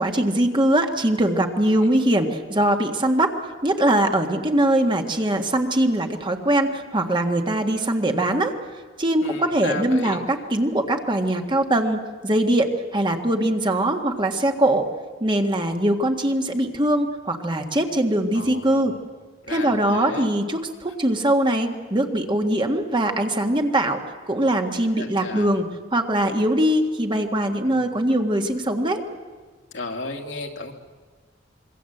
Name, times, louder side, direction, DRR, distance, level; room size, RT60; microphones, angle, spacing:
voice 1, 0.0-3.3 3.6-8.5 9.0-14.9 15.2-18.9 19.5-24.0 24.3-29.0, right 1 dB, 25° right, 4 dB, 1.8 m, -22 dB
voice 2, 9.2-10.2 18.3-19.0 19.4-20.3 24.9-25.5 27.7-27.9 29.7-30.7, left 3 dB, 70° left, 2 dB, 2.6 m, -34 dB
26.5 x 23.0 x 8.0 m, 1.4 s
head